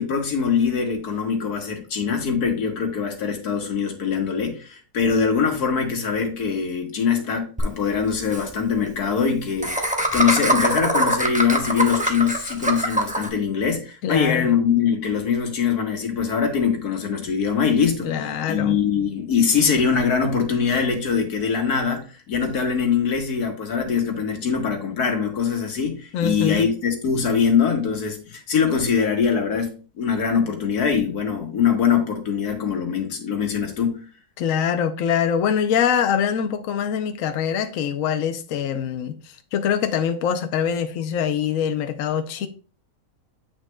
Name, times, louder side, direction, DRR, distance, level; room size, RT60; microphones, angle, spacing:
voice 1, 0.0-34.0, left 6 dB, 85° left, 1.8 m, -23 dB
Laughter, 7.6-7.7 7.9-8.0 8.2-8.4 9.6-13.3, right 1 dB, 10° right, 0.6 m, -22 dB
voice 2, 14.0-14.5 18.0-18.8 26.1-26.7 34.4-42.5, left 8 dB, 65° left, 1.0 m, -24 dB
8.2 x 6.2 x 2.2 m
omnidirectional pair, 1.6 m